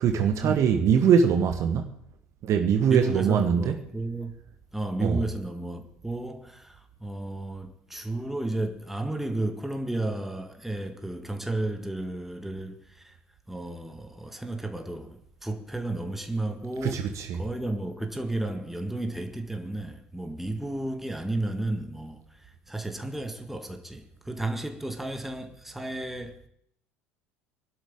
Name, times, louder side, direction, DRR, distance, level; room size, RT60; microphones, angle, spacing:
voice 1, 0.0-1.9 2.4-3.8 5.0-5.2 16.8-17.4, right 7 dB, 45° right, 1.2 m, -22 dB
voice 2, 2.9-4.3 4.7-13.2 13.5-17.1 17.3-26.5, right 2 dB, 5° right, 1.7 m, -33 dB
23.0 x 12.0 x 3.8 m
figure-of-eight pair, 65°, 7 cm